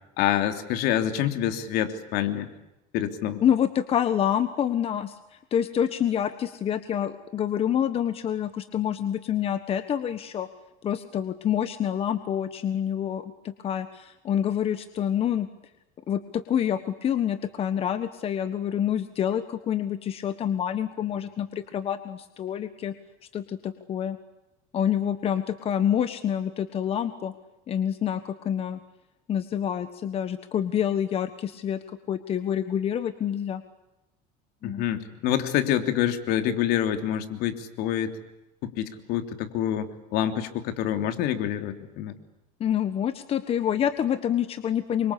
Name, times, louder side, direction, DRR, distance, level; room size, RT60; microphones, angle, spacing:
voice 1, 0.2-2.5 2.9-3.4 34.6-38.2 38.6-42.2, left 11 dB, 65° left, 8 dB, 3.2 m, -27 dB
voice 2, 3.4-10.5 10.8-15.5 16.1-22.9 23.3-24.2 24.7-27.3 27.7-28.8 29.3-33.6 34.6-34.8 42.6-45.1, left 9 dB, 35° left, 10 dB, 1.4 m, -27 dB
27.5 x 25.0 x 8.6 m, 0.94 s
cardioid pair, 150°, 18 cm